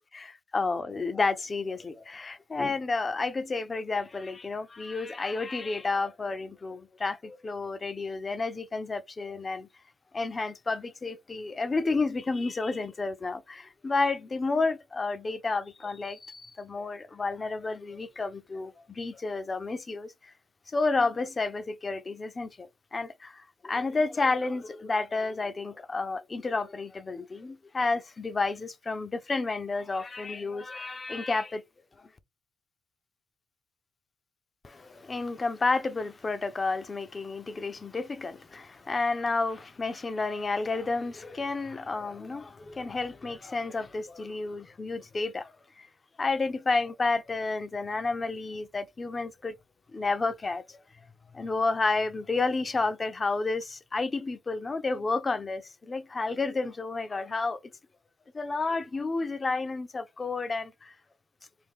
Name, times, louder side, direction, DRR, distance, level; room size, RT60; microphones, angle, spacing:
voice 1, 0.5-9.7 10.1-20.3 20.7-31.6 34.6-45.9 46.2-49.5 49.9-50.8 51.3-57.6 58.3-60.9, left 3 dB, 30° left, 0.5 m, -31 dB
3.5 x 2.4 x 3.6 m
cardioid pair, 90°, 0 cm